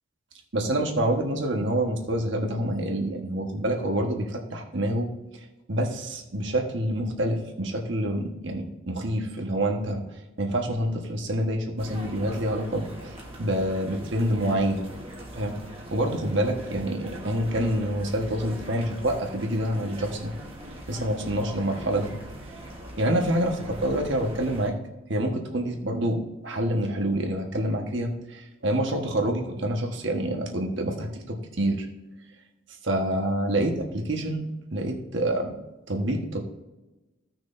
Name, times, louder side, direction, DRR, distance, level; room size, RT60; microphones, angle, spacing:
voice 1, 0.5-5.1 5.7-10.0 10.4-13.1 13.4-14.9 15.3-15.5 15.9-20.3 20.9-22.2 23.0-24.7 25.1-31.9 32.8-35.5 35.9-36.4, right 1 dB, 60° right, 2 dB, 1.4 m, -27 dB
sound 1, 11.8-24.7, right 1 dB, 25° right, 1.3 m, -41 dB
16.0 x 6.1 x 2.6 m, 1.1 s
head